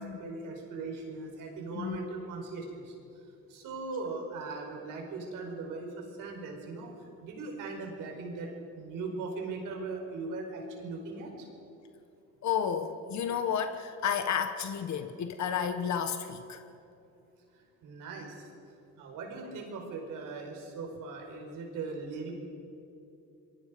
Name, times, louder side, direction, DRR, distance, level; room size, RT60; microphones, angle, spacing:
voice 1, 0.0-2.9 3.5-5.9 6.2-6.9 7.2-8.5 8.7-11.3 17.8-18.5 19.0-22.3, right 3 dB, 80° right, 1 dB, 5.0 m, -39 dB
voice 2, 12.4-16.6, left 7 dB, 60° left, 8 dB, 1.3 m, -32 dB
27.5 x 23.0 x 5.2 m, 2.7 s
cardioid pair, 120°, 31 cm